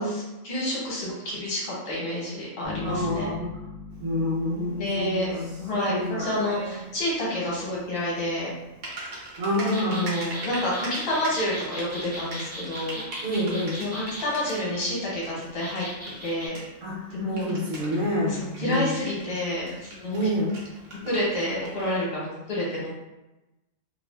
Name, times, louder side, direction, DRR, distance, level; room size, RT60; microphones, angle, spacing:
voice 1, 0.0-3.3 4.6-8.5 9.9-13.0 13.8-15.9 16.2-16.6 17.1-17.5 18.1-18.2 18.6-20.3 21.0-22.9, left 1 dB, 50° left, -6 dB, 1.0 m, -29 dB
sound 1, 2.6-5.7, left 5 dB, 30° left, 0.4 m, -38 dB
voice 2, 2.8-3.5 4.0-5.6 5.9-6.3 9.4-10.2 13.2-13.8 16.8-19.0 20.1-20.5, left 1 dB, 70° right, -6 dB, 1.1 m, -28 dB
Typing, 3.9-22.0, right 2 dB, 55° right, 0.8 m, -42 dB
sound 2, 9.7-14.3 15.6-16.5, equal, 15° right, 0.6 m, -38 dB
2.6 x 2.3 x 2.2 m, 1.0 s
omnidirectional pair, 1.4 m